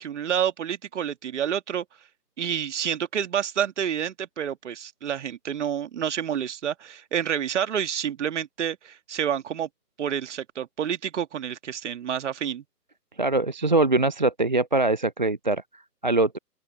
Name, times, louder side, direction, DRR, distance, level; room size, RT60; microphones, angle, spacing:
voice 1, 0.0-1.8 2.4-9.7 10.0-12.6, right 9 dB, 45° right, 1.9 m, -29 dB
voice 2, 13.2-16.4, right 2 dB, 30° right, 0.4 m, -23 dB
open air
figure-of-eight pair, 140°, 48 cm